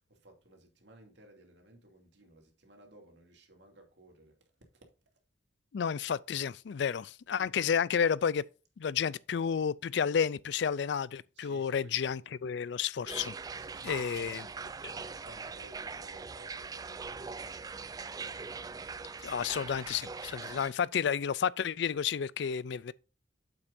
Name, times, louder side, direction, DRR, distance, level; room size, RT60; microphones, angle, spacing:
voice 1, 0.0-4.4 4.7-4.9 7.3-7.5 11.3-12.3 13.6-17.7, right 1 dB, 65° right, 2.7 m, -57 dB
voice 2, 5.7-8.4 8.8-13.3 13.8-14.4 19.2-22.9, left 7 dB, 65° left, 0.4 m, -31 dB
sound 1, 13.1-20.7, right 4 dB, 20° right, 0.3 m, -42 dB
8.9 x 7.8 x 2.6 m
head